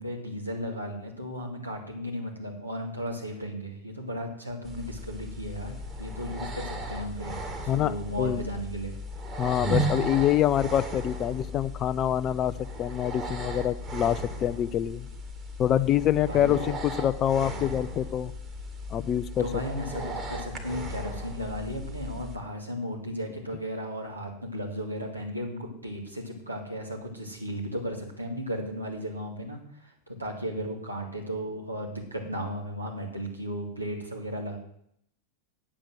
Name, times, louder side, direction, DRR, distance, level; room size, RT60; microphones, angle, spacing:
voice 1, 0.0-8.9 16.2-16.7 17.4-17.7 19.4-34.6, equal, 85° right, -1 dB, 2.5 m, -35 dB
sound 1, 4.6-22.4, equal, 20° right, 1.9 m, -36 dB
voice 2, 9.4-15.1 15.6-18.3 18.9-19.5, left 11 dB, 30° left, 15 dB, 0.5 m, -26 dB
8.8 x 7.5 x 7.7 m, 0.71 s
figure-of-eight pair, 90°, 0 cm